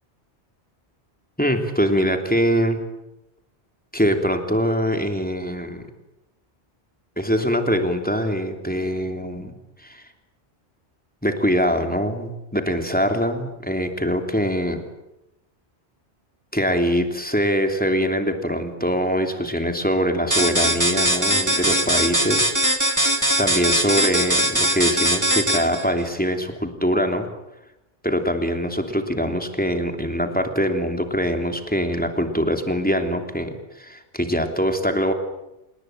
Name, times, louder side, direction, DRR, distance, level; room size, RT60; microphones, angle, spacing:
voice 1, 1.4-2.8 3.9-5.8 7.2-9.5 9.8-10.0 11.2-14.8 16.5-22.5 23.4-27.3 28.0-35.1, equal, 10° left, 5 dB, 3.1 m, -23 dB
sound 1, 20.3-25.9, right 1 dB, 15° right, 2.4 m, -20 dB
28.0 x 20.0 x 9.1 m, 0.91 s
omnidirectional pair, 1.1 m